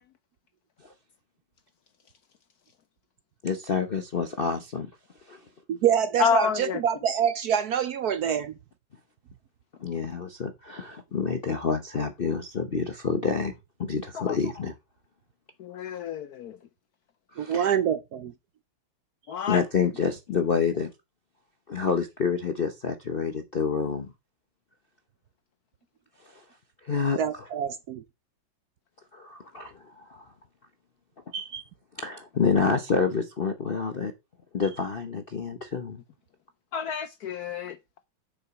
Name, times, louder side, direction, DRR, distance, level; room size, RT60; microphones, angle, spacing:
voice 1, 3.4-4.9 5.3-5.4 9.8-13.5 13.8-14.7 17.3-17.7 19.5-20.9 21.7-24.1 26.3-26.4 26.8-27.5 29.1-30.3 32.0-34.1 34.5-36.0, left 5 dB, 50° left, 0.6 m, -28 dB
voice 2, 5.7-8.5 17.4-18.3 27.2-28.0 31.3-31.6, right 8 dB, 65° right, 1.0 m, -26 dB
voice 3, 6.2-6.8 14.2-14.4 15.6-16.6 19.3-19.6 36.7-37.8, left 7 dB, 65° left, 1.0 m, -28 dB
7.8 x 6.9 x 5.8 m
omnidirectional pair, 2.1 m